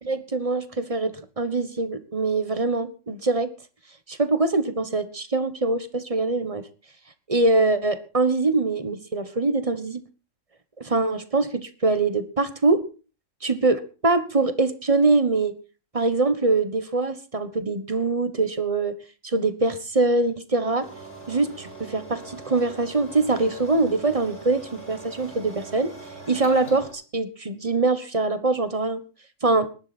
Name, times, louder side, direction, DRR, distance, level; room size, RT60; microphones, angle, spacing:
voice 1, 0.0-3.5 4.1-6.7 7.3-10.0 10.8-12.8 13.4-15.5 15.9-19.0 19.2-20.9 21.3-25.9 26.3-29.0 29.4-29.7, right 3 dB, 20° right, 11 dB, 1.1 m, -23 dB
sound 1, 20.8-26.9, right 3 dB, 35° left, 5.8 m, -41 dB
19.5 x 11.0 x 4.3 m, 0.35 s
omnidirectional pair, 2.0 m